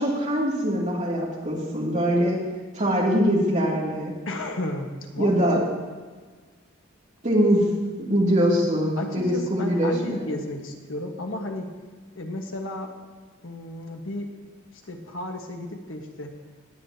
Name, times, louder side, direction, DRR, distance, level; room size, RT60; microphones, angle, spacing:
voice 1, 0.0-2.4 2.7-4.1 5.2-5.6 7.2-7.6 8.1-10.2, equal, 35° right, -3 dB, 2.4 m, -22 dB
voice 2, 4.2-5.6 9.0-11.7 12.1-12.9 13.4-14.3 14.7-16.3, left 1 dB, 70° left, 3 dB, 1.4 m, -33 dB
19.5 x 8.5 x 2.8 m, 1.5 s
head